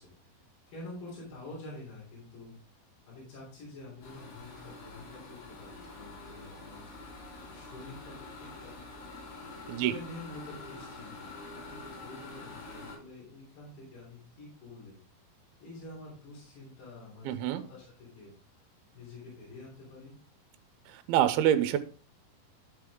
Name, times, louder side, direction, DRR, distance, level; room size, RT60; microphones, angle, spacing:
voice 1, 0.7-2.6 3.1-6.9 7.5-9.1 9.8-15.0 15.6-18.3 18.6-20.1, left 2 dB, 60° left, -6 dB, 5.1 m, -48 dB
sound 1, 4.0-13.0, left 3 dB, 80° left, 4.5 m, -46 dB
voice 2, 17.3-17.6 20.9-21.8, right 11 dB, 80° right, 10 dB, 2.6 m, -26 dB
13.0 x 4.8 x 3.6 m, 0.40 s
omnidirectional pair, 4.5 m